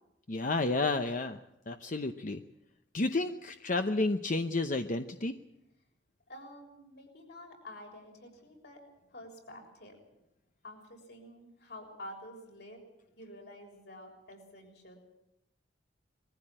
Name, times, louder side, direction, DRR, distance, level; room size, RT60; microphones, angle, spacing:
voice 1, 0.3-1.4 1.7-2.4 2.9-5.3, left 2 dB, 45° left, 7 dB, 0.8 m, -31 dB
voice 2, 6.3-8.8 9.1-10.1 10.6-12.8 13.2-15.0, left 1 dB, 65° left, 2 dB, 6.7 m, -49 dB
22.0 x 15.0 x 8.8 m, 0.87 s
head